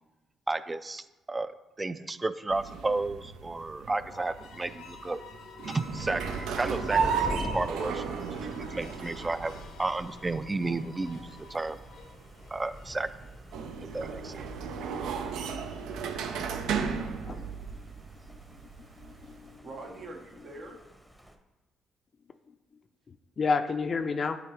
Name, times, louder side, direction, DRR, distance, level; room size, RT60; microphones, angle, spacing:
voice 1, 0.5-1.5 1.8-5.2 5.7-11.8 12.5-13.1 13.9-14.4, right 2 dB, 25° right, 13 dB, 0.4 m, -33 dB
sound 1, 2.5-19.6, right 6 dB, 80° right, 0.5 m, -35 dB
sound 2, 3.9-13.3, left 5 dB, 80° left, 0.7 m, -50 dB
Thunder, 5.9-21.4, equal, ahead, 0.8 m, -45 dB
voice 2, 15.2-15.7 19.2-19.4 19.6-20.8, right 2 dB, 55° right, 2 dB, 0.9 m, -45 dB
voice 3, 17.1-17.8 18.5-18.6 19.0-19.6 23.1-24.4, left 4 dB, 45° left, 9 dB, 0.4 m, -31 dB
9.1 x 3.6 x 3.1 m, 1.1 s
supercardioid pair, 65°, 0 cm